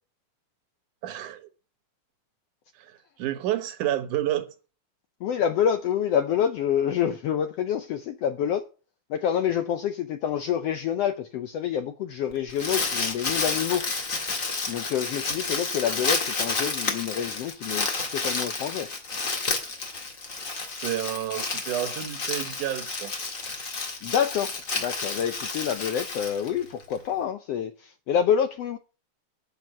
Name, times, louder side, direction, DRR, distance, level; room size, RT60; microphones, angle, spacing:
voice 1, 1.0-1.5 2.8-2.9 3.2-4.5 19.6-19.7 20.8-23.1, right 12 dB, 75° right, 2.5 m, -30 dB
voice 2, 5.2-8.6 9.1-13.9 14.7-17.9 18.1-18.9 24.0-28.8, left 8 dB, 75° left, 1.4 m, -27 dB
Crumpling crinkling, 12.3-26.9, left 3 dB, 35° left, 1.5 m, -30 dB
9.1 x 6.3 x 8.5 m
omnidirectional pair, 3.6 m